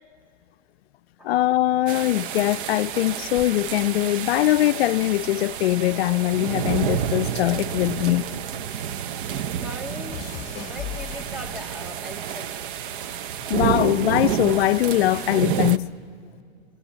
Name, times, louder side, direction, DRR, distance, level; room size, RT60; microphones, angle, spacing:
voice 1, 1.2-8.3 13.5-15.9, left 15 dB, 70° left, 0.5 m, -22 dB
sound 1, 1.9-15.8, right 9 dB, 50° right, 0.8 m, -29 dB
sound 2, 3.3-5.9 6.1-8.8 9.1-11.9 12.6-13.0, left 12 dB, 25° left, 1.3 m, -41 dB
voice 2, 9.6-10.2 10.6-12.7, left 1 dB, 5° right, 0.8 m, -39 dB
23.5 x 22.5 x 7.2 m
hypercardioid pair, 135°, 32 cm